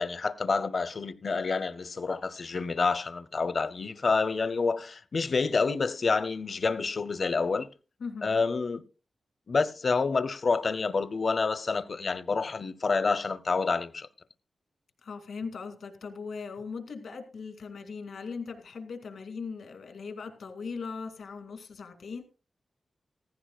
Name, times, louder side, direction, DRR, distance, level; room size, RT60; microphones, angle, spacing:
voice 1, 0.0-7.7 8.2-8.8 9.5-14.1, left 4 dB, 55° left, 0.8 m, -28 dB
voice 2, 8.0-8.4 15.0-22.2, left 5 dB, 85° left, 2.2 m, -39 dB
15.0 x 15.0 x 2.4 m
cardioid pair, 65°, 0 cm